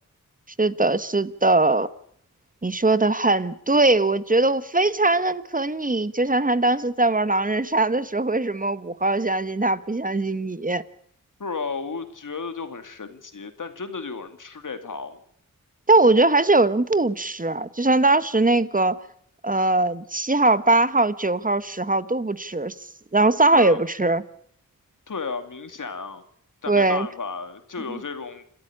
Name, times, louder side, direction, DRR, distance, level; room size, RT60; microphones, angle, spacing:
voice 1, 0.6-1.9 2.6-10.8 15.9-19.0 19.4-22.7 23.1-24.2 26.7-27.1 27.9-28.0, right 2 dB, 25° right, 1.2 m, -21 dB
voice 2, 11.4-15.2 23.5-23.8 25.1-26.2 26.6-28.4, left 4 dB, 70° left, 2.4 m, -33 dB
27.5 x 13.0 x 8.5 m
cardioid pair, 55°, 33 cm